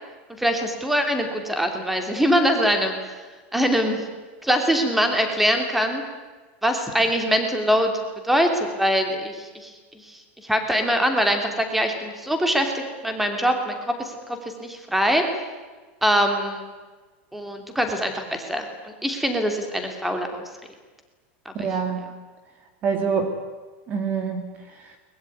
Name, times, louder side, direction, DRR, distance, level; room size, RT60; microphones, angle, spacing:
voice 1, 0.4-3.2 3.5-4.0 4.4-6.0 6.6-7.9 8.2-9.7 10.0-15.4 16.0-16.7 17.3-20.5 21.4-21.7, equal, 5° right, 5 dB, 3.0 m, -23 dB
voice 2, 21.5-22.1 22.8-23.4 23.9-25.0, right 5 dB, 25° right, 6 dB, 2.2 m, -26 dB
22.5 x 21.5 x 9.4 m, 1.3 s
supercardioid pair, 170°, 6 cm